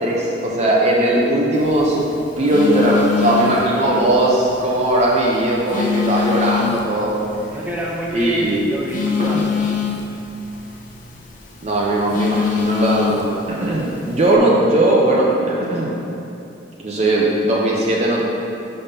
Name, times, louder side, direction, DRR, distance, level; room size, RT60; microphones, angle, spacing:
voice 1, 0.0-2.1 2.4-7.2 8.1-8.6 9.3-9.5 11.6-15.9 16.8-18.2, right 1 dB, 40° right, -4 dB, 0.8 m, -18 dB
Telephone, 1.5-14.4, left 6 dB, 50° left, 0.8 m, -26 dB
voice 2, 3.2-4.1 7.5-9.5, equal, 10° right, -5 dB, 1.0 m, -29 dB
5.7 x 5.4 x 5.6 m, 2.7 s
head